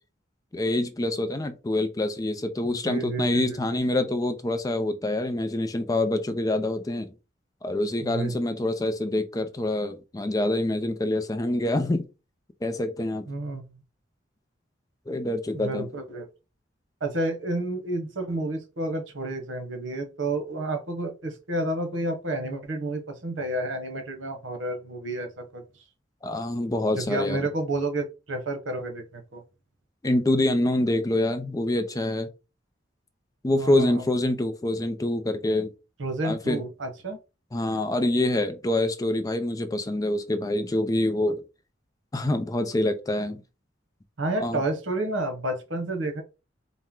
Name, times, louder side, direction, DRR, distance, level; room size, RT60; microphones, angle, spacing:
voice 1, 0.5-7.1 7.6-12.1 12.6-13.3 15.1-15.9 26.2-27.4 30.0-32.3 33.4-35.7 36.2-36.6 37.5-41.4 42.1-43.4 44.4-44.6, left 1 dB, 20° left, 0.4 m, -26 dB
voice 2, 2.6-3.8 8.0-8.3 13.3-13.7 15.5-16.3 17.0-25.6 26.9-29.4 33.6-34.0 36.0-37.2 44.2-46.2, right 2 dB, 90° right, 1.0 m, -30 dB
4.3 x 2.1 x 3.6 m
head